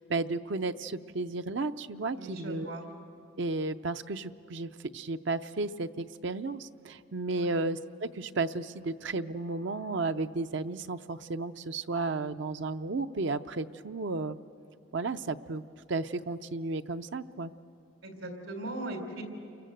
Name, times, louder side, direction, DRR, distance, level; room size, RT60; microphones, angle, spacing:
voice 1, 0.0-2.7 3.4-14.4 14.9-15.6 15.9-17.5, right 3 dB, 65° right, 10 dB, 0.6 m, -33 dB
voice 2, 2.1-2.8 7.3-7.6 18.0-19.2, right 1 dB, 85° right, 5 dB, 3.7 m, -39 dB
29.0 x 23.0 x 7.9 m, 2.5 s
head